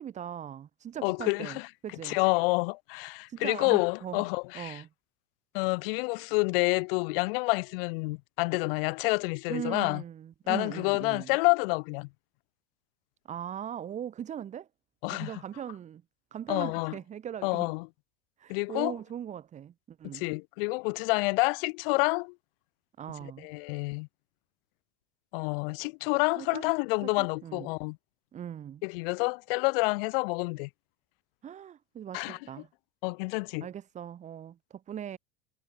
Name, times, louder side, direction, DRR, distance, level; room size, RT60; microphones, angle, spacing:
voice 1, 0.0-2.2 3.3-4.2 4.5-4.9 9.5-11.4 13.3-14.7 15.1-16.0 16.3-17.7 18.4-20.3 23.0-23.5 26.4-26.7 27.0-27.7 28.3-28.8 31.4-32.7 33.6-35.2, right 9 dB, 25° right, 3.0 m, -40 dB
voice 2, 1.0-1.7 2.0-4.8 5.5-10.0 10.5-12.1 15.0-15.3 16.5-16.9 17.4-17.9 18.5-18.9 20.1-22.3 23.4-24.1 25.3-28.0 28.8-30.7 32.1-32.4 33.0-33.7, left 28 dB, 65° left, 1.0 m, -28 dB
cardioid pair, 175°, 31 cm